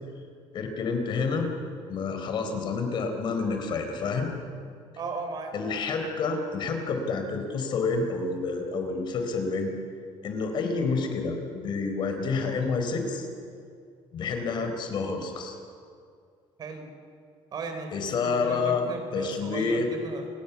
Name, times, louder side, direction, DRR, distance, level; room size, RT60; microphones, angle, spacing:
voice 1, 0.5-1.5 1.9-4.3 5.5-9.7 10.2-13.3 14.1-15.6 17.9-18.8 19.1-19.9, left 4 dB, 50° left, 5 dB, 4.2 m, -28 dB
voice 2, 5.0-5.5 16.6-16.9 17.5-20.3, right 4 dB, 40° right, 6 dB, 4.1 m, -37 dB
29.0 x 21.5 x 7.2 m, 2.3 s
cardioid pair, 150°, 10 cm